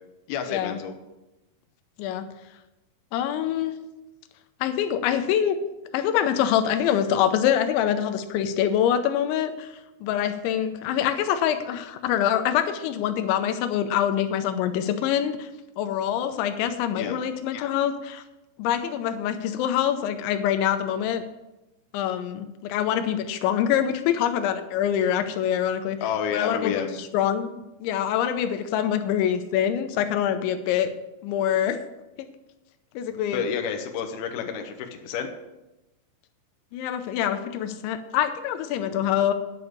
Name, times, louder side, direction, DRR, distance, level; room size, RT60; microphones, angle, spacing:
voice 1, 0.3-0.9 16.9-17.2 26.0-27.0 33.3-35.3, left 7 dB, 70° left, 5 dB, 2.7 m, -30 dB
voice 2, 3.1-3.7 4.6-5.6 5.9-9.7 10.0-15.5 15.8-18.2 18.6-21.2 21.9-26.0 26.3-26.7 27.0-27.5 27.8-30.9 31.2-31.8 32.2-32.3 33.0-33.5 36.7-39.3, left 10 dB, 90° left, 9 dB, 3.1 m, -25 dB
9.6 x 7.0 x 7.9 m, 0.99 s
omnidirectional pair, 5.2 m